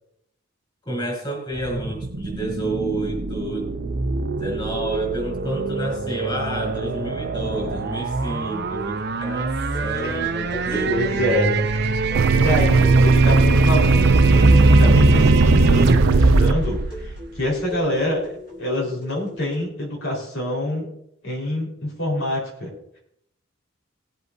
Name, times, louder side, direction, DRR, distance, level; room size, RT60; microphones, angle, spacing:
voice 1, 0.9-3.7 4.4-9.5 9.8-11.2, right 1 dB, 20° left, -3 dB, 4.3 m, -29 dB
sound 1, 1.6-17.8, right 2 dB, 55° right, 0.7 m, -21 dB
sound 2, 9.6-19.7, left 1 dB, 45° left, 3.8 m, -39 dB
voice 2, 10.9-11.6 12.3-20.9 21.2-22.7, left 1 dB, 70° left, -2 dB, 4.2 m, -26 dB
sound 3, 12.1-16.5, right 5 dB, 90° right, 0.4 m, -19 dB
20.0 x 8.1 x 2.7 m, 0.74 s
head